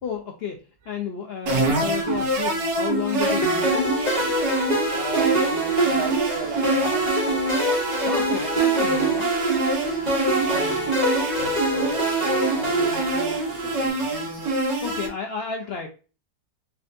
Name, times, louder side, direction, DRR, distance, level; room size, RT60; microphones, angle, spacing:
voice 1, 0.0-4.0 8.1-9.4 14.8-15.9, left 6 dB, 75° left, 0.5 m, -31 dB
sound 1, 1.5-15.1, right 1 dB, 85° right, 1.4 m, -26 dB
sound 2, 3.2-13.9, right 2 dB, 30° right, 1.4 m, -25 dB
voice 2, 4.9-7.1 10.4-11.0 11.3-12.1 12.6-14.2, right 6 dB, 60° right, 0.7 m, -36 dB
3.6 x 3.3 x 2.5 m
omnidirectional pair, 1.6 m